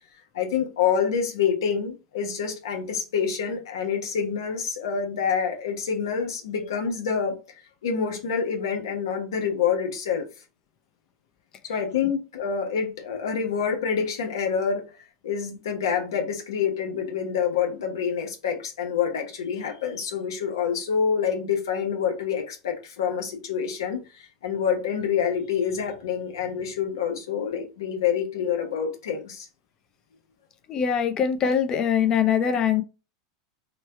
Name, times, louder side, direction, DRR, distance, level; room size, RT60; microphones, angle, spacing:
voice 1, 0.3-7.3 7.8-10.3 11.6-14.9 15.2-29.5, left 7 dB, 85° left, 1.0 m, -27 dB
voice 2, 30.7-32.8, left 7 dB, 30° left, 0.5 m, -22 dB
3.1 x 2.2 x 4.3 m
supercardioid pair, 125°, 2 cm